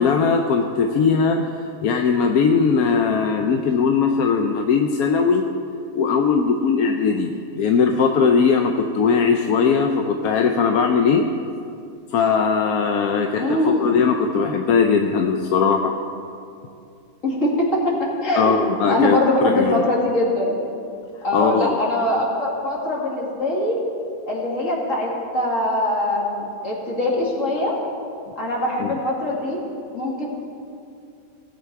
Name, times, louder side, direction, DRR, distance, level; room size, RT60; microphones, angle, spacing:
voice 1, 0.0-5.5 6.0-11.2 12.1-15.9 18.4-19.2 19.4-19.8 21.3-21.8 28.8-28.9, left 5 dB, 85° left, 4 dB, 1.1 m, -19 dB
voice 2, 13.3-14.0 17.2-20.5 21.2-23.8 24.3-27.8 28.4-29.6 29.9-30.3, left 1 dB, 60° left, -3 dB, 2.6 m, -22 dB
17.0 x 8.2 x 4.6 m, 2.5 s
omnidirectional pair, 1.5 m